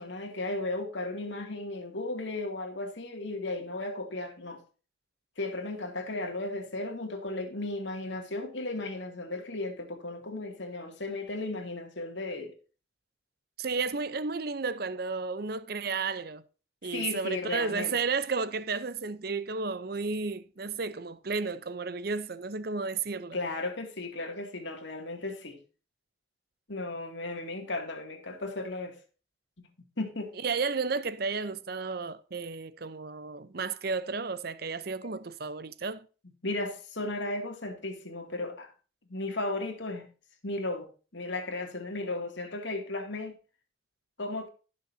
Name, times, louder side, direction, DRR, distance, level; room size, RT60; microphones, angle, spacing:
voice 1, 0.0-4.6 5.4-12.5 16.8-18.0 23.3-25.6 26.7-29.0 29.6-29.7 30.0-30.3 35.0-35.2 36.4-38.7 39.1-40.1 40.4-43.4 44.2-44.5, left 2 dB, 65° left, 2.3 m, -35 dB
voice 2, 13.6-16.4 16.8-23.4 30.4-36.1, right 4 dB, 50° right, 0.7 m, -32 dB
16.5 x 6.5 x 2.7 m
head